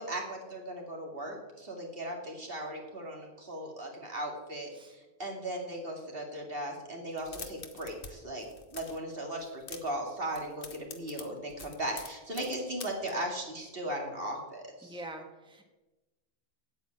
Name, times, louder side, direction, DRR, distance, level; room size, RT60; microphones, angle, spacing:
voice 1, 0.0-8.5 8.7-15.0, right 1 dB, 65° right, 1 dB, 2.6 m, -37 dB
sound 1, 7.1-8.1 8.4-9.0 9.4-10.0 10.3-13.1, left 4 dB, 60° left, 1.4 m, -45 dB
voice 2, 14.8-15.7, right 1 dB, 5° right, 3 dB, 1.3 m, -44 dB
9.2 x 8.3 x 8.8 m, 1.1 s
omnidirectional pair, 1.1 m